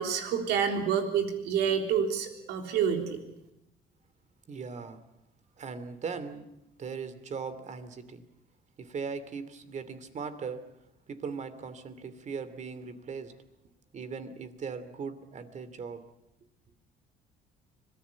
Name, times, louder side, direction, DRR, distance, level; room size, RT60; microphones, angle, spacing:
voice 1, 0.0-3.2, right 7 dB, 85° right, 5 dB, 3.7 m, -28 dB
voice 2, 4.5-5.0 5.6-6.5 6.8-8.2 8.8-10.7 11.1-13.3 13.9-16.0, right 5 dB, 45° right, 12 dB, 2.6 m, -39 dB
25.5 x 18.0 x 8.4 m, 0.86 s
cardioid pair, 110°, 17 cm